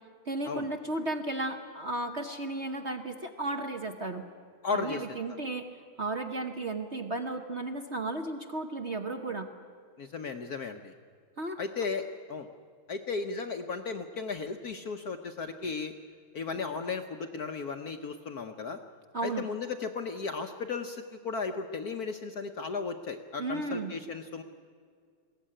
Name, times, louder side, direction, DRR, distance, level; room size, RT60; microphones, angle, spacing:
voice 1, 0.2-4.2 4.7-5.7 6.0-9.5 11.4-11.6 19.1-19.5 23.4-23.9, right 2 dB, 40° right, 5 dB, 1.0 m, -34 dB
voice 2, 4.6-5.1 10.0-10.9 11.6-12.5 12.9-15.9 16.3-18.8 19.2-24.4, left 4 dB, 60° left, 6 dB, 1.1 m, -35 dB
21.5 x 16.0 x 10.0 m, 2.1 s
omnidirectional pair, 2.4 m